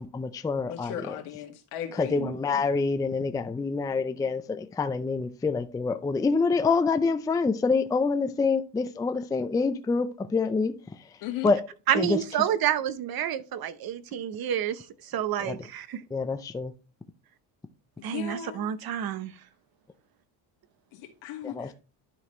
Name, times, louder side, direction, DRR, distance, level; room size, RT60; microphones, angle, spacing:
voice 1, 0.0-1.2 1.9-10.7 11.4-11.6 11.9-12.2 15.4-15.5 16.1-16.7 21.4-21.7, left 4 dB, 10° left, 0.4 m, -26 dB
voice 2, 0.7-2.1 11.2-11.5 18.1-18.7 20.9-21.7, left 10 dB, 80° left, 2.1 m, -37 dB
voice 3, 11.9-16.0 18.0-19.3, right 10 dB, 45° right, 0.8 m, -29 dB
12.0 x 4.1 x 3.1 m
supercardioid pair, 100°, 49 cm